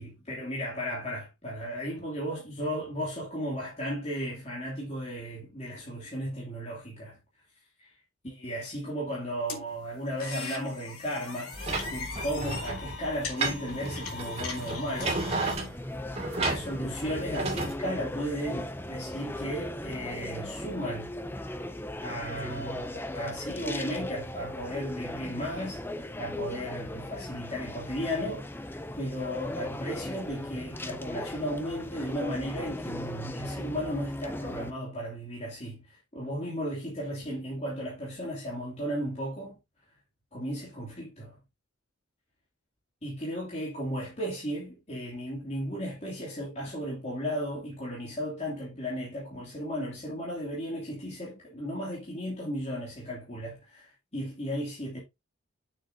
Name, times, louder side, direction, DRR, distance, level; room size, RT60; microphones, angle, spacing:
voice 1, 0.0-7.2 7.8-7.9 8.2-11.5 11.9-15.2 15.5-15.7 16.4-21.1 22.0-25.8 26.2-39.6 40.3-41.4 43.0-55.0, equal, 30° left, 2.8 m, -35 dB
sound 1, 9.5-15.5, left 4 dB, 90° left, 2.3 m, -39 dB
sound 2, 11.5-17.7, right 2 dB, 30° right, 2.3 m, -33 dB
sound 3, 15.3-34.7, left 1 dB, 10° left, 0.5 m, -37 dB
8.2 x 6.7 x 2.8 m
head